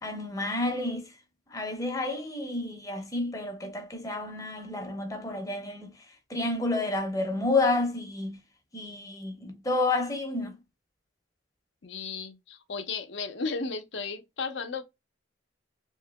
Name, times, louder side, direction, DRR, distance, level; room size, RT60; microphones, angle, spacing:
voice 1, 0.0-1.1 1.5-5.9 6.3-8.4 8.7-10.6, left 2 dB, 15° left, 0.7 m, -30 dB
voice 2, 11.8-14.8, left 4 dB, 65° left, 0.6 m, -34 dB
3.0 x 2.8 x 3.4 m
head